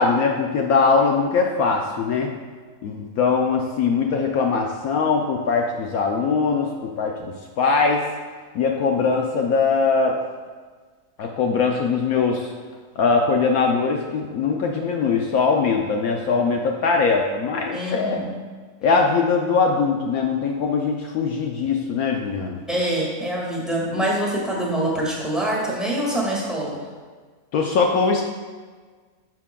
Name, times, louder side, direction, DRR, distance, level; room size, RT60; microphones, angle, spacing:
voice 1, 0.0-2.3 2.8-8.0 8.5-10.2 11.2-12.5 13.0-18.2 18.8-22.6 27.5-28.2, left 4 dB, 70° left, 1 dB, 1.0 m, -21 dB
voice 2, 17.7-18.3 22.7-26.8, right 1 dB, ahead, -4 dB, 1.7 m, -25 dB
10.5 x 5.9 x 2.2 m, 1.5 s
omnidirectional pair, 1.6 m